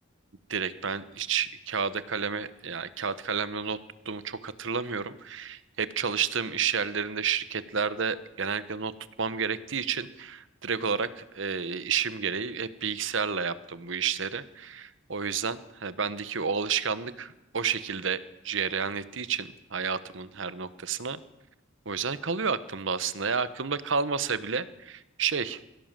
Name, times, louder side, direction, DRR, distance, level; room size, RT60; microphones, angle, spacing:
voice 1, 0.5-3.8 4.0-8.9 9.2-21.2 21.8-25.6, right 6 dB, 65° right, 15 dB, 1.1 m, -30 dB
22.0 x 17.0 x 7.6 m, 0.92 s
head